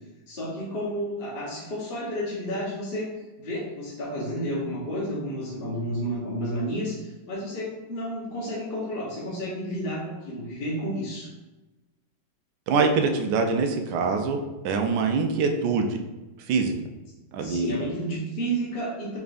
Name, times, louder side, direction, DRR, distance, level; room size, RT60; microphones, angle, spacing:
voice 1, 0.3-3.1 3.4-11.3 17.4-19.2, equal, 40° left, -6 dB, 0.9 m, -31 dB
voice 2, 12.7-16.0 16.5-16.7 17.3-17.8, right 4 dB, 75° right, 4 dB, 1.1 m, -24 dB
4.1 x 3.5 x 2.4 m, 1.1 s
omnidirectional pair, 2.0 m